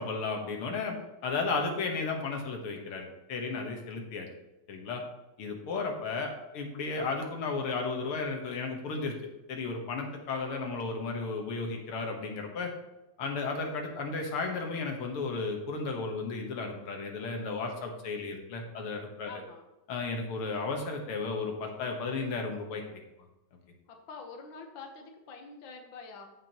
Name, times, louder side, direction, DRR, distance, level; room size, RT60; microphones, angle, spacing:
voice 1, 0.0-4.3 4.7-5.0 5.4-9.2 9.5-12.7 13.2-19.3 19.9-23.0, left 4 dB, 85° left, 2 dB, 2.2 m, -34 dB
voice 2, 19.2-19.7 23.9-26.3, left 4 dB, 65° left, 3 dB, 1.8 m, -46 dB
14.5 x 6.0 x 3.0 m, 1.0 s
omnidirectional pair, 2.4 m